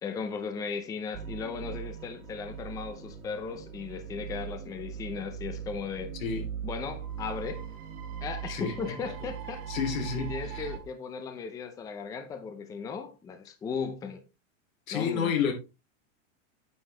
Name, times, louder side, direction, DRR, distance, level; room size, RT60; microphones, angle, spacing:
voice 1, 0.0-6.1 6.6-7.7 8.2-9.7 10.2-14.2 14.9-15.3, left 5 dB, 10° left, 0.6 m, -36 dB
sound 1, 1.1-10.8, right 8 dB, 55° right, 3.0 m, -40 dB
voice 2, 8.5-8.9 9.7-10.7 14.9-15.5, left 7 dB, 85° left, 3.3 m, -30 dB
9.2 x 6.9 x 3.3 m
supercardioid pair, 160°, 39 cm